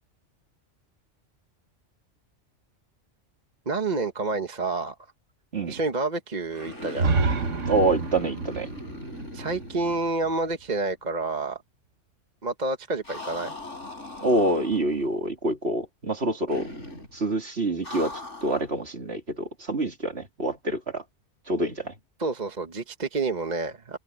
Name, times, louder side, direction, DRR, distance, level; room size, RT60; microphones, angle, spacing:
voice 1, 3.7-5.0 5.7-7.1 9.3-11.6 12.4-13.5 22.2-24.0, right 3 dB, 35° right, 1.3 m, -29 dB
sound 1, 6.5-10.7 10.9-11.0 13.0-15.1 16.5-17.2 17.8-18.7, left 1 dB, 75° left, 6.7 m, -39 dB
sound 2, 7.0-10.8, right 3 dB, 85° right, 1.7 m, -29 dB
voice 2, 7.7-8.7 14.2-16.7 17.1-21.0 21.5-21.9, right 2 dB, 60° right, 3.4 m, -26 dB
open air
omnidirectional pair, 1.2 m